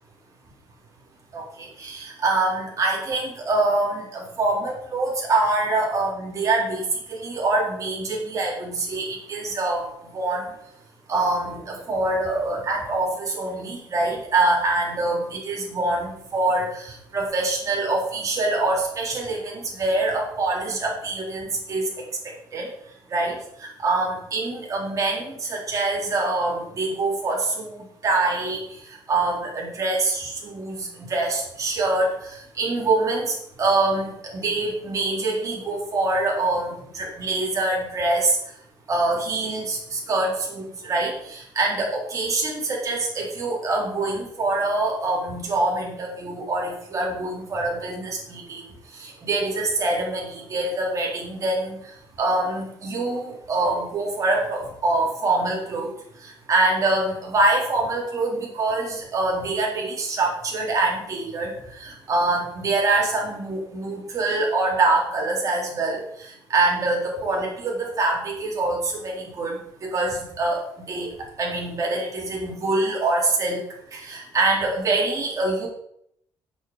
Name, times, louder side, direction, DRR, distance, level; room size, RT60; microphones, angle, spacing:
voice 1, 1.3-9.8 10.1-10.4 11.1-21.9 22.5-22.7 23.1-38.4 38.9-48.6 48.9-51.8 52.2-55.9 56.2-70.6 70.9-71.1 71.4-73.6 73.9-75.7, right 2 dB, 40° right, -2 dB, 4.1 m, -25 dB
7.8 x 7.7 x 8.1 m, 0.73 s
cardioid pair, 135°, 9 cm